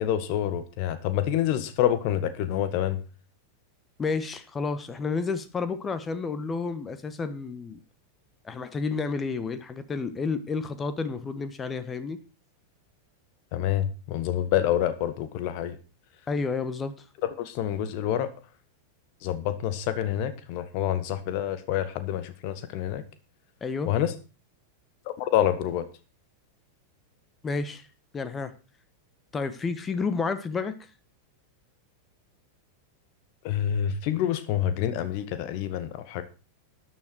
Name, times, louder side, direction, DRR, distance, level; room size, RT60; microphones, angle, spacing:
voice 1, 0.0-3.0 13.5-15.8 17.2-18.3 19.2-23.0 23.8-24.1 25.1-25.8 33.4-36.2, left 11 dB, 45° left, 11 dB, 1.5 m, -27 dB
voice 2, 4.0-7.8 8.4-12.2 16.3-16.9 23.6-23.9 27.4-27.9 28.1-28.5 29.3-30.7, left 4 dB, 20° left, 12 dB, 1.3 m, -30 dB
13.0 x 9.6 x 4.7 m, 0.34 s
figure-of-eight pair, 90°, 0 cm